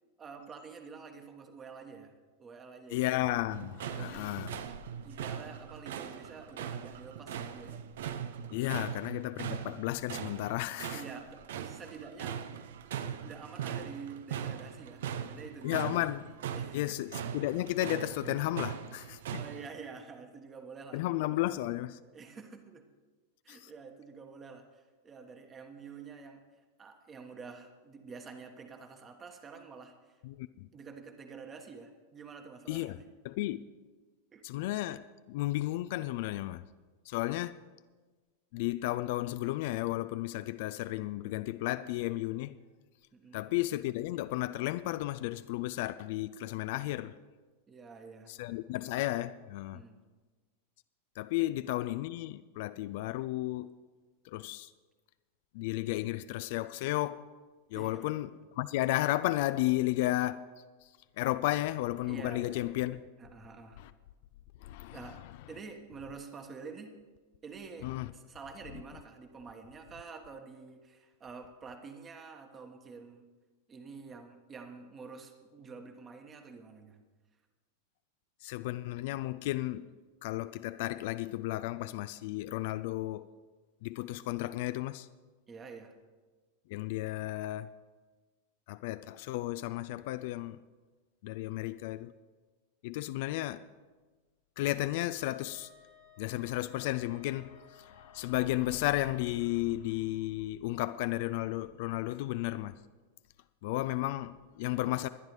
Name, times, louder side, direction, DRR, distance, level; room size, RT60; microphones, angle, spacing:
voice 1, 0.2-2.1 2.4-3.0 3.8-4.3 5.0-7.8 8.7-8.8 10.9-12.4 13.2-15.9 16.5-17.0 19.3-21.0 22.0-22.8 23.4-26.4 26.8-29.9 30.7-33.1 34.3-34.4 43.1-43.5 47.7-48.3 49.7-50.0 51.4-51.5 57.7-58.1 62.0-62.7 63.2-63.8 64.9-65.2 65.5-66.9 67.4-73.2 73.7-77.0 85.5-85.9, right 5 dB, 20° right, 1.3 m, -48 dB
voice 2, 2.9-4.5 8.5-11.0 15.6-16.2 16.7-19.4 20.9-22.0 23.5-23.7 30.2-30.7 32.7-33.0 33.2-33.6 34.4-35.0 35.3-36.6 37.1-37.6 38.5-42.6 43.3-47.1 48.3-49.8 51.2-53.7 54.3-54.7 55.5-57.2 57.7-58.3 58.6-60.5 61.2-63.0 63.8-63.9 64.6-65.0 67.8-68.1 78.4-79.9 80.2-83.3 83.8-85.1 86.7-87.7 88.7-90.6 91.2-92.1 92.8-93.6 94.6-95.7 96.2-102.8 103.6-105.1, left 16 dB, 50° left, 0.4 m, -33 dB
sound 1, 3.5-19.7, right 8 dB, 60° right, 0.6 m, -40 dB
Wind instrument woodwind instrument, 95.2-99.8, left 3 dB, 80° right, 2.9 m, -60 dB
21.0 x 10.5 x 3.2 m
figure-of-eight pair, 90°, 0 cm